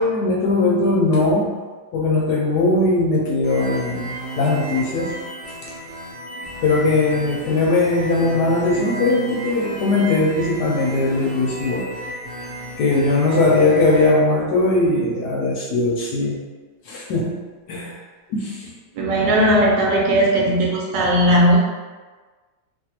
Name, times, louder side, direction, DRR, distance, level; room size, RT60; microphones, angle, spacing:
voice 1, 0.0-1.6 1.9-5.2 6.6-11.9 12.8-16.4 16.9-17.4 17.7-17.9 18.3-18.6, left 2 dB, 75° left, -3 dB, 1.0 m, -19 dB
sound 1, 3.4-14.1, right 1 dB, 50° right, 1.3 m, -33 dB
voice 2, 18.9-21.6, equal, 75° right, -2 dB, 1.2 m, -17 dB
3.2 x 2.3 x 2.8 m, 1.4 s
omnidirectional pair, 2.1 m